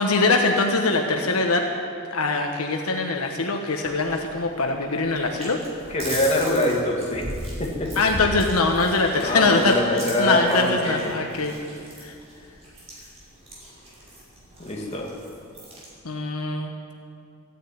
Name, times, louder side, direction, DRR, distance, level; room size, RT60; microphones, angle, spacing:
voice 1, 0.0-1.7 2.1-5.6 8.0-11.6 12.0-12.1 16.0-16.7, left 3 dB, 75° left, 3 dB, 1.2 m, -22 dB
sound 1, 3.8-15.9, right 1 dB, 30° right, 4.8 m, -38 dB
voice 2, 5.9-7.3 7.6-7.9 9.1-11.3 14.6-15.1, left 1 dB, 30° left, -2 dB, 2.4 m, -24 dB
15.0 x 10.0 x 8.8 m, 2.4 s
head